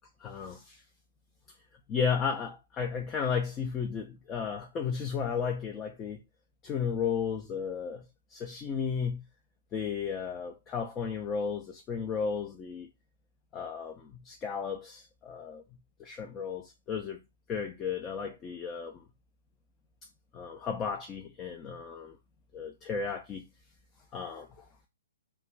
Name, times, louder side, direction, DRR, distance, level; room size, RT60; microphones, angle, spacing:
voice 1, 0.2-0.8 1.9-6.2 6.6-8.0 8.3-9.2 9.7-12.9 13.5-15.6 16.0-17.2 17.5-19.0 20.3-22.2 22.5-23.4 24.1-24.5, left 6 dB, 20° left, 0.4 m, -34 dB
2.3 x 2.2 x 3.2 m
figure-of-eight pair, 120°, 0 cm